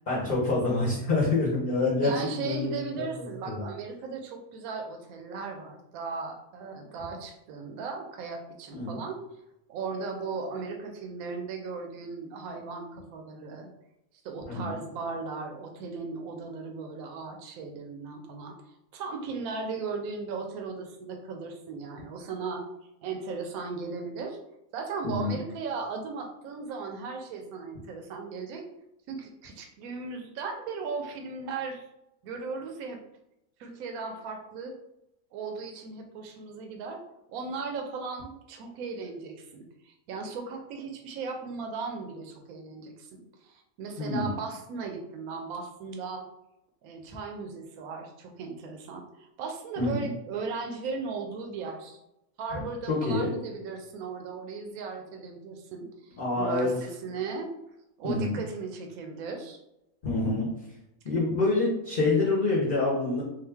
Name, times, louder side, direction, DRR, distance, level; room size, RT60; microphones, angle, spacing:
voice 1, 0.1-2.7 3.0-3.6 8.7-9.0 14.5-14.7 25.0-25.3 44.0-44.3 49.8-50.1 52.9-53.3 56.2-56.7 58.0-58.3 60.0-60.5 61.0-63.2, left 3 dB, 40° left, -5 dB, 0.9 m, -27 dB
voice 2, 2.0-9.2 9.7-13.7 14.2-18.5 18.9-22.7 23.0-24.4 24.7-28.7 29.1-31.9 32.2-33.0 33.6-34.7 35.3-37.0 37.3-46.3 46.8-52.0 52.4-57.5 58.0-59.6, right 4 dB, 80° right, 3 dB, 1.0 m, -37 dB
3.7 x 2.3 x 3.4 m, 0.87 s
omnidirectional pair, 1.5 m